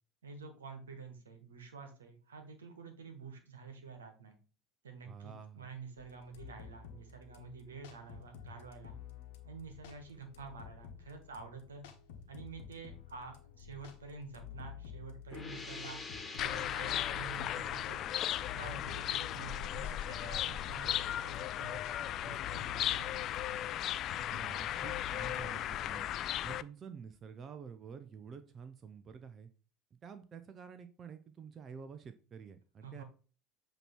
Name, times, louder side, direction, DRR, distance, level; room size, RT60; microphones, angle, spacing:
voice 1, 0.2-4.4 4.8-8.9 9.4-11.9 12.3-16.0 16.3-18.0 18.5-23.8 32.8-33.0, right 5 dB, 80° right, 6 dB, 1.3 m, -49 dB
voice 2, 5.0-5.6 24.3-26.1 26.4-29.5 30.0-33.0, right 6 dB, 35° right, 10 dB, 0.6 m, -49 dB
sound 1, 6.0-25.7, left 8 dB, 70° left, 1.1 m, -51 dB
sound 2, 15.3-20.8, left 4 dB, 20° left, 1.5 m, -48 dB
sound 3, 16.4-26.6, left 12 dB, 50° left, 0.3 m, -36 dB
7.8 x 3.0 x 4.4 m, 0.37 s
figure-of-eight pair, 70°, 0 cm